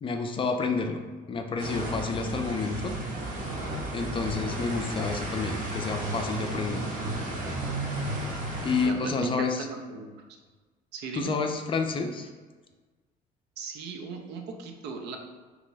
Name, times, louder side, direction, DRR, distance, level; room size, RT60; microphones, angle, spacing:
voice 1, 0.0-2.9 3.9-6.9 8.6-9.7 11.1-12.3, left 4 dB, 30° left, 4 dB, 0.4 m, -29 dB
sound 1, 1.6-8.9, right 2 dB, 50° right, 0.8 m, -33 dB
voice 2, 8.9-10.1 10.9-11.3 13.6-15.2, right 4 dB, 80° right, 4 dB, 0.5 m, -37 dB
2.9 x 2.5 x 3.8 m, 1.3 s
cardioid pair, 110°, 17 cm